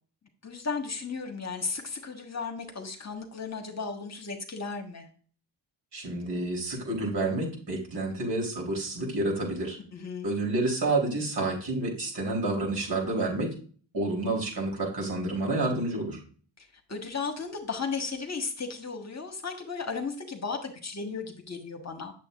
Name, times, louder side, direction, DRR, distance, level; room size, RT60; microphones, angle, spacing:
voice 1, 0.4-5.1 9.9-10.3 16.6-22.1, left 4 dB, 35° left, 4 dB, 1.4 m, -35 dB
voice 2, 5.9-9.8 10.2-13.5 13.9-16.2, right 2 dB, 55° right, 0 dB, 3.8 m, -29 dB
7.6 x 7.3 x 2.5 m, 0.42 s
supercardioid pair, 60°, 48 cm